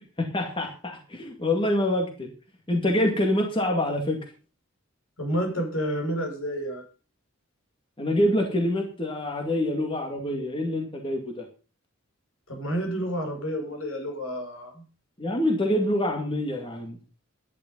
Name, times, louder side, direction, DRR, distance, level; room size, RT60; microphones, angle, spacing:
voice 1, 0.2-2.3 2.7-4.2 8.0-11.4 15.2-17.0, left 1 dB, 25° left, 3 dB, 2.2 m, -26 dB
voice 2, 5.2-6.8 12.5-14.8, equal, 80° left, 3 dB, 6.2 m, -30 dB
12.0 x 10.5 x 5.4 m, 0.35 s
head